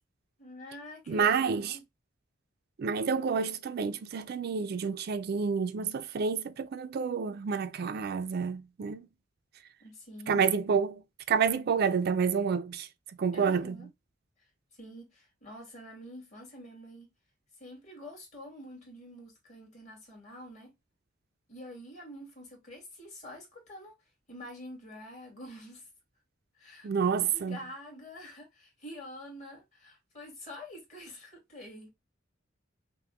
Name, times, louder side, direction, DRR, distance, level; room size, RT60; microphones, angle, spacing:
voice 1, 0.4-1.8 9.8-10.5 13.3-13.9 14.7-17.1 17.6-20.7 21.5-23.9 24.3-25.9 26.5-31.9, left 1 dB, 35° left, 2.0 m, -47 dB
voice 2, 1.1-1.8 2.8-9.1 10.3-11.0 11.3-12.9 13.2-13.8 26.8-27.6, right 6 dB, 50° right, 0.3 m, -29 dB
5.7 x 2.1 x 2.3 m
head